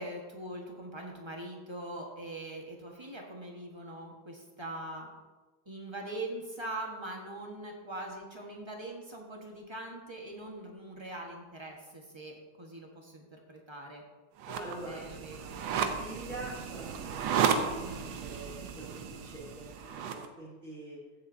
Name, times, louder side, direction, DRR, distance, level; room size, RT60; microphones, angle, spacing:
voice 1, 0.0-5.1 5.6-14.0 14.5-15.6 17.8-18.2, right 1 dB, 15° right, 0 dB, 1.1 m, -42 dB
sound 1, 14.4-20.3, right 7 dB, 70° right, 1.4 m, -34 dB
voice 2, 14.6-15.0 15.6-21.0, right 1 dB, 35° right, -8 dB, 3.0 m, -45 dB
15.0 x 7.7 x 2.7 m, 1.3 s
omnidirectional pair, 2.2 m